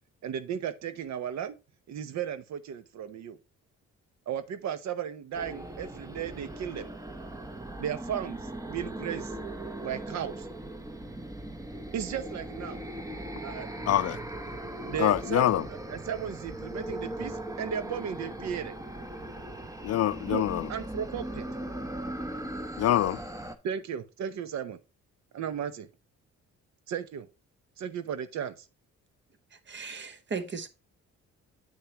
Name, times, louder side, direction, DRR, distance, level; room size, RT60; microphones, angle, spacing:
voice 1, 0.2-1.6 1.9-3.4 4.3-6.9 7.8-8.4 8.6-9.3 9.8-10.5 11.9-12.8 13.4-13.9 14.8-18.7 20.3-20.4 20.7-21.4 23.6-24.8 25.3-25.9 26.9-27.3 27.8-28.7, right 9 dB, 65° right, 0.8 m, -35 dB
sound 1, 5.3-23.6, right 1 dB, 10° right, 0.9 m, -39 dB
voice 2, 13.9-14.2 15.0-15.7 19.8-20.7 22.8-23.2, left 12 dB, 55° left, 0.5 m, -25 dB
voice 3, 29.7-30.7, right 5 dB, 40° right, 1.1 m, -36 dB
8.3 x 6.7 x 2.9 m
cardioid pair, 90°, 30 cm